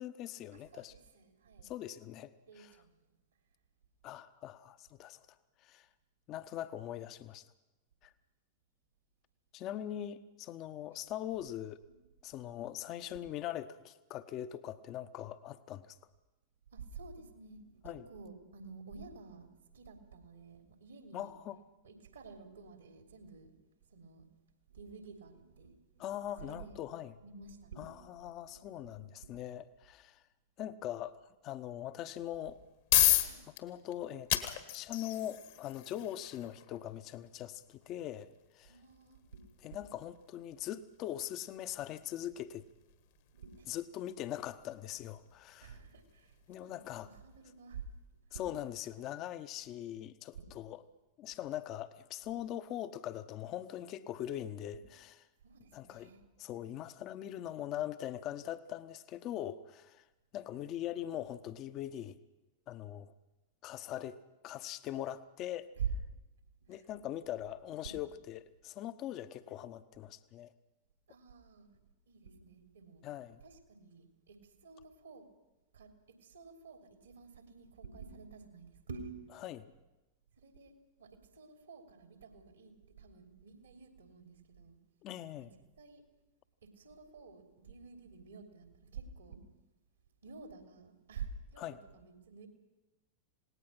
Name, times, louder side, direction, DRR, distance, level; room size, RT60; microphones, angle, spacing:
voice 1, 0.0-0.9 1.7-2.7 4.0-5.2 5.6-5.9 6.3-7.5 8.0-8.1 9.5-11.8 12.2-16.0 17.8-18.0 21.1-21.6 26.0-27.1 27.8-30.2 30.6-31.2 31.4-32.6 33.5-38.3 38.5-38.7 39.6-42.6 43.7-45.7 46.5-47.1 48.3-50.8 51.2-55.1 55.7-56.1 56.4-60.0 60.3-62.2 62.7-63.1 63.6-64.2 64.4-65.7 66.7-70.5 73.0-73.4 79.4-79.7 85.0-85.5 91.6-91.8, left 12 dB, 35° left, 12 dB, 1.0 m, -41 dB
voice 2, 0.5-1.7 2.4-3.1 10.9-11.0 11.9-12.0 13.1-13.3 16.7-21.3 21.8-23.5 23.9-24.3 24.7-26.0 26.4-26.8 27.2-28.1 28.5-29.3 33.2-33.4 38.7-39.8 43.3-43.7 45.6-48.5 50.4-50.5 54.7-54.8 55.4-56.2 65.8-65.9 66.7-66.9 67.8-68.0 71.1-73.0 73.4-75.3 75.7-79.3 80.4-80.7 81.0-84.8 85.3-85.5 85.8-86.0 86.6-89.5 90.2-92.5, right 6 dB, 70° right, 4 dB, 3.2 m, -49 dB
sound 1, 32.4-47.3, left 15 dB, 55° left, 1.6 m, -37 dB
27.5 x 18.5 x 5.9 m, 1.0 s
figure-of-eight pair, 90°, 0 cm